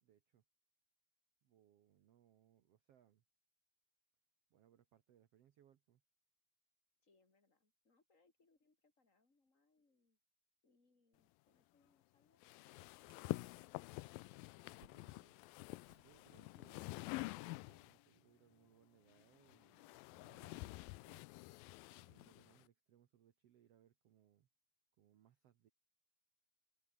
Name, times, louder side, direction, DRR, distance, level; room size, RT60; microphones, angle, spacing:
voice 1, 0.0-0.4 1.4-3.2 4.5-6.0 14.8-15.3 15.9-21.3 21.9-24.5 25.0-25.7, right 10 dB, 85° right, 1.3 m, -71 dB
voice 2, 7.0-10.2 10.6-13.1, left 3 dB, 20° left, 4.8 m, -78 dB
sound 1, 12.4-18.0 19.1-22.6, left 22 dB, 85° left, 2.1 m, -48 dB
Hands, 12.7-17.8, right 6 dB, 35° right, 2.6 m, -75 dB
omnidirectional pair, 4.6 m